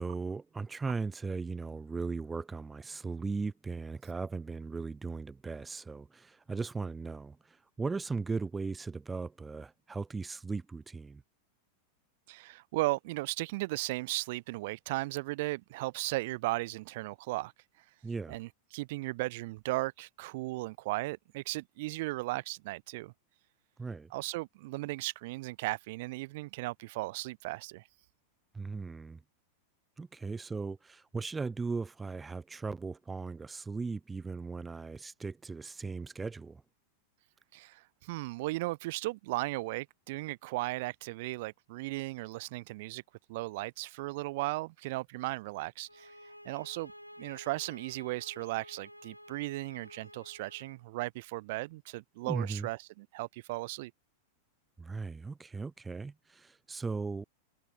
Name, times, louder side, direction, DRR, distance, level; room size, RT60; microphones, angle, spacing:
voice 1, 0.0-11.2 18.0-18.4 23.8-24.1 28.5-29.2 30.0-36.6 52.2-52.7 54.8-57.2, right 4 dB, 10° right, 1.0 m, -37 dB
voice 2, 12.3-17.5 18.3-23.1 24.1-27.8 37.5-43.0 43.3-46.2 46.4-46.9 47.2-53.9, right 21 dB, 50° right, 1.4 m, -36 dB
sound 1, 45.8-50.8, equal, 90° left, 6.2 m, -52 dB
figure-of-eight pair, 90°, 0 cm